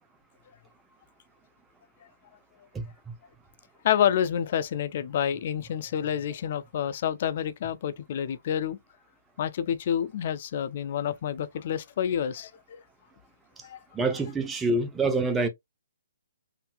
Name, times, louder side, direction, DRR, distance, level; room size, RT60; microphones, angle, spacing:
voice 1, 3.8-8.8 9.4-12.8 13.6-13.8, left 9 dB, 45° left, 0.4 m, -28 dB
voice 2, 13.9-15.5, right 2 dB, 10° right, 0.7 m, -26 dB
3.8 x 2.7 x 2.3 m
figure-of-eight pair, 135°, 0 cm